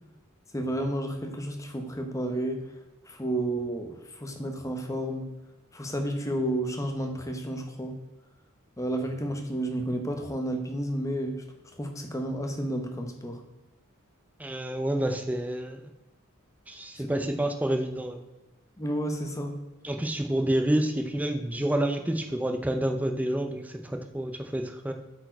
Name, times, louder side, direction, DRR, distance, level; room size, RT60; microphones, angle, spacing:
voice 1, 0.5-2.6 3.1-5.3 5.7-8.0 8.8-11.4 11.8-13.4 17.0-17.1 18.8-19.6, right 1 dB, 15° left, 4 dB, 1.0 m, -31 dB
voice 2, 14.4-15.8 16.7-18.2 19.8-24.9, right 1 dB, 5° right, 5 dB, 0.5 m, -28 dB
8.3 x 4.7 x 4.5 m, 1.1 s
head